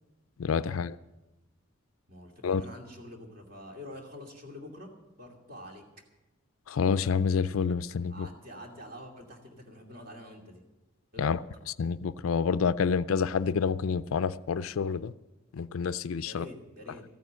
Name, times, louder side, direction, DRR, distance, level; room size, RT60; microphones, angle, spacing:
voice 1, 0.4-1.0 2.4-2.6 6.7-8.3 11.2-11.4 11.8-15.1 15.5-16.5, left 6 dB, 80° left, 0.4 m, -28 dB
voice 2, 2.1-4.9 5.2-5.8 8.1-10.6 11.1-11.4 16.2-17.0, left 1 dB, 45° right, 2.5 m, -46 dB
14.5 x 9.3 x 7.5 m
head